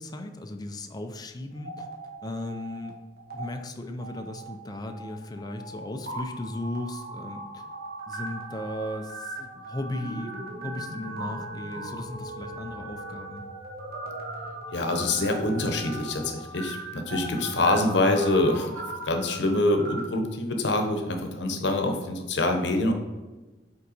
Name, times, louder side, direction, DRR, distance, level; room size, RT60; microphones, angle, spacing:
voice 1, 0.0-1.9 2.2-3.0 3.3-7.6 8.1-10.3 10.6-13.4 17.4-17.7, left 1 dB, 20° left, 5 dB, 0.4 m, -36 dB
sound 1, 1.5-2.9 3.2-3.4 4.0-20.0, right 2 dB, 55° right, 1.2 m, -39 dB
voice 2, 14.7-22.9, left 2 dB, 70° left, 5 dB, 0.9 m, -25 dB
5.6 x 4.5 x 4.0 m, 1.2 s
head